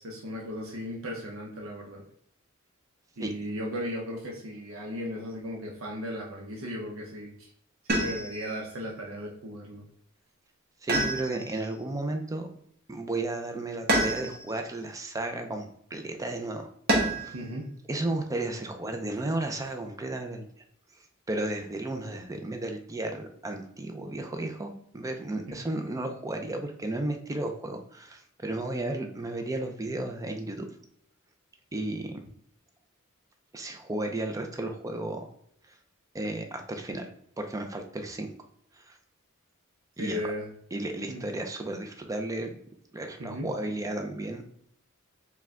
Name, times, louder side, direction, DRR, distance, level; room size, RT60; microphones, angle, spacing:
voice 1, 0.0-2.0 3.2-7.5 7.9-9.9 17.3-17.7 40.0-40.5 41.1-41.3 43.2-43.5, equal, 70° right, -1 dB, 0.7 m, -36 dB
sound 1, 7.9-8.5 10.9-11.7 13.9-14.6 16.9-17.4 19.1-19.7, right 1 dB, 50° right, 1.0 m, -28 dB
voice 2, 10.8-12.5 12.9-17.3 17.9-20.5 21.3-30.7 31.7-32.2 33.5-35.3 36.1-37.1 37.4-38.3 38.8-39.0 40.0-40.2 40.7-42.5 42.9-44.4, right 2 dB, 15° right, 5 dB, 0.4 m, -33 dB
4.6 x 2.2 x 3.6 m, 0.68 s
head